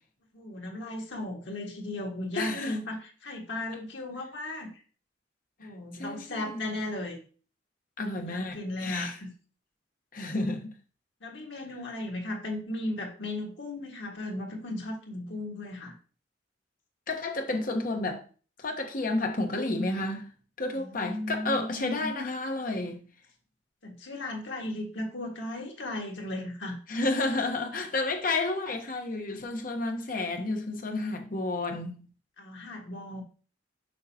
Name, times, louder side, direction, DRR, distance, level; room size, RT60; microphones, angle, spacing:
voice 1, 0.3-4.7 5.6-7.2 8.1-9.3 11.2-15.9 20.7-22.1 23.8-26.8 32.4-33.2, left 1 dB, 85° left, 1.8 m, -36 dB
voice 2, 2.4-2.8 6.0-6.6 8.0-9.1 10.1-10.7 17.1-18.2 18.6-20.3 20.6-23.0 26.9-32.0, left 2 dB, 50° left, 1.1 m, -31 dB
6.5 x 5.6 x 2.8 m
head